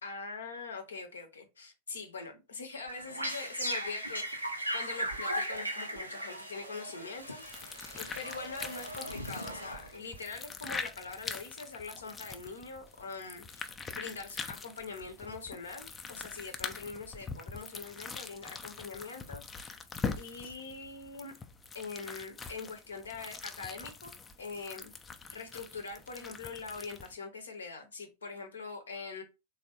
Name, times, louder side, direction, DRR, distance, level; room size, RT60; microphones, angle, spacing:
voice 1, 0.0-4.3 4.7-7.7 7.9-19.8 20.2-21.3 21.7-24.9 25.3-29.2, left 4 dB, 70° left, 0.6 m, -43 dB
sound 1, 2.9-10.2, equal, 85° right, 0.5 m, -38 dB
sound 2, 7.2-27.1, left 5 dB, 20° left, 0.3 m, -43 dB
3.4 x 2.0 x 2.8 m
figure-of-eight pair, 90°, 0 cm